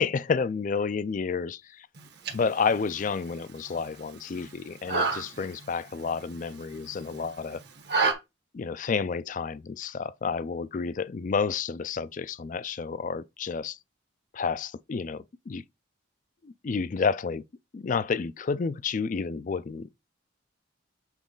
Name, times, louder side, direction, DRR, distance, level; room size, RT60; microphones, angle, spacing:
voice 1, 0.0-1.9 2.3-7.6 8.5-13.8 14.3-15.6 16.4-17.4 17.7-19.9, left 5 dB, 40° left, 0.4 m, -30 dB
sound 1, 1.9-8.1, right 4 dB, 55° right, 1.2 m, -33 dB
7.3 x 4.0 x 3.8 m
head